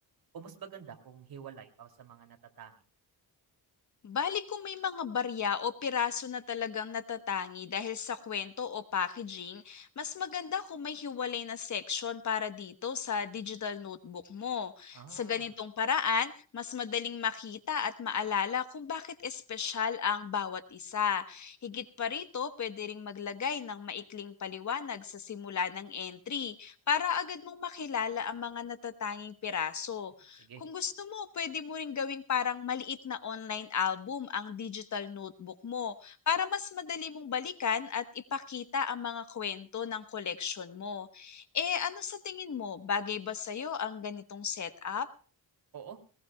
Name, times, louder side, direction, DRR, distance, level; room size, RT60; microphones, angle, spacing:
voice 1, 0.3-2.8 14.9-15.5 30.4-30.6 45.7-46.0, right 7 dB, 65° right, 5 dB, 2.8 m, -48 dB
voice 2, 4.0-45.1, left 7 dB, 45° left, 10 dB, 1.2 m, -34 dB
20.0 x 20.0 x 2.3 m, 0.38 s
wide cardioid pair, 135°, 40 cm